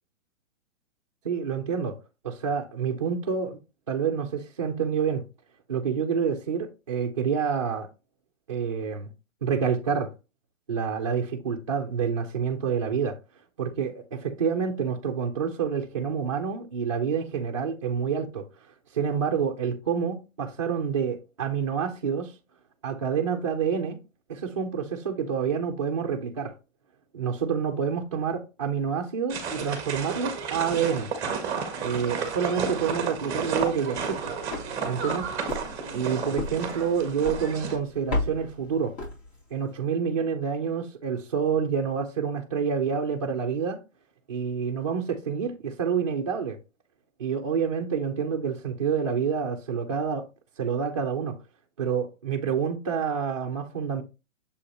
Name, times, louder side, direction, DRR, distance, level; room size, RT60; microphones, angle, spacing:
voice 1, 1.2-1.9 2.2-3.6 3.9-5.2 5.7-7.9 8.5-9.1 9.4-10.1 10.7-13.2 13.6-18.4 18.9-22.3 22.8-24.0 24.3-26.5 27.1-31.1 31.8-34.3 34.8-35.3 35.9-38.9 39.5-43.8 44.3-46.6 47.2-50.3 50.6-51.4 51.8-54.0, right 6 dB, 25° right, 0.5 m, -28 dB
sound 1, 29.3-37.8, right 5 dB, 10° right, 0.8 m, -32 dB
sound 2, 33.4-39.7, left 2 dB, 50° left, 3.4 m, -36 dB
6.9 x 5.0 x 2.8 m
hypercardioid pair, 160°, 40 cm